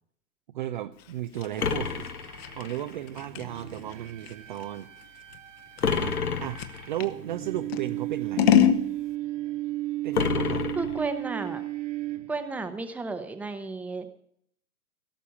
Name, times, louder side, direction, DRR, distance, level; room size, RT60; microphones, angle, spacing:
voice 1, 0.5-5.2 5.9-8.5 10.0-10.7, right 12 dB, 35° right, 9 dB, 0.5 m, -35 dB
Scissors, 1.0-7.2 7.7-8.8, left 10 dB, 45° left, 1.2 m, -27 dB
sound 1, 1.6-3.0 5.8-7.0 10.1-11.5, left 6 dB, 90° left, 1.1 m, -30 dB
sound 2, 1.6-12.7, right 15 dB, 55° right, 1.7 m, -36 dB
voice 2, 10.8-11.6 12.3-14.1, right 3 dB, 5° right, 8 dB, 0.8 m, -33 dB
17.0 x 6.9 x 8.6 m, 0.67 s
hypercardioid pair, 125°, 44 cm